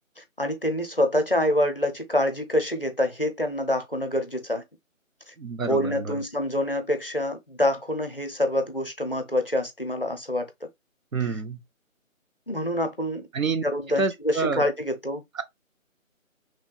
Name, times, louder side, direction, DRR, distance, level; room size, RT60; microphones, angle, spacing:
voice 1, 0.2-4.6 5.3-5.4 5.6-10.5 12.5-13.3 13.6-15.2, left 1 dB, 45° left, 0.5 m, -26 dB
voice 2, 5.4-6.2 11.1-11.6 13.3-13.6 14.0-14.7 15.3-15.4, right 4 dB, 75° right, 0.7 m, -28 dB
3.1 x 2.9 x 2.2 m
figure-of-eight pair, 160°, 41 cm